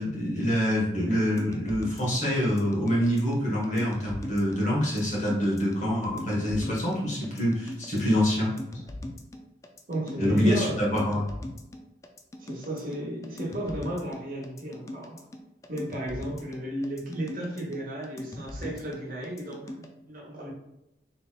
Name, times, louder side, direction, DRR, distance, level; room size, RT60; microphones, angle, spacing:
voice 1, 0.0-8.5 10.2-11.3, equal, 40° left, -5 dB, 1.5 m, -26 dB
sound 1, 1.4-19.9, left 1 dB, 15° left, 0.3 m, -40 dB
voice 2, 9.9-10.8 12.4-15.2 15.7-20.5, right 1 dB, 50° right, -3 dB, 1.2 m, -34 dB
4.0 x 3.3 x 2.4 m, 0.90 s
head